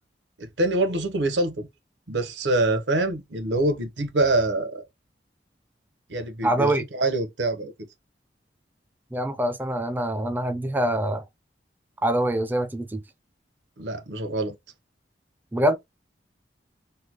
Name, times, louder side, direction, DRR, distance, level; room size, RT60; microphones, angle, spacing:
voice 1, 0.4-1.7 2.1-4.8 6.1-7.7 13.8-14.5, right 2 dB, 90° right, 0.9 m, -25 dB
voice 2, 6.4-6.8 9.1-11.2 12.0-13.0 15.5-15.8, right 1 dB, 10° right, 0.4 m, -24 dB
3.3 x 2.2 x 2.9 m
head